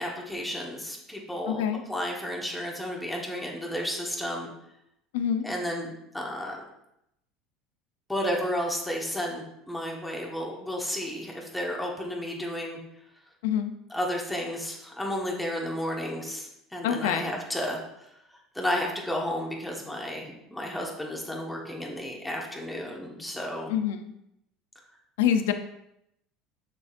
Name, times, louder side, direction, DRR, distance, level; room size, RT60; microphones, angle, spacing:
voice 1, 0.0-1.6 1.9-4.5 5.4-6.6 8.1-12.8 13.9-18.1 18.5-23.7, equal, 5° left, -1 dB, 1.4 m, -32 dB
voice 2, 1.5-1.8 5.1-5.5 13.4-13.7 16.8-17.3 23.7-24.1 25.2-25.5, left 9 dB, 90° left, 8 dB, 0.6 m, -26 dB
6.9 x 6.8 x 2.5 m, 0.80 s
supercardioid pair, 115°, 0 cm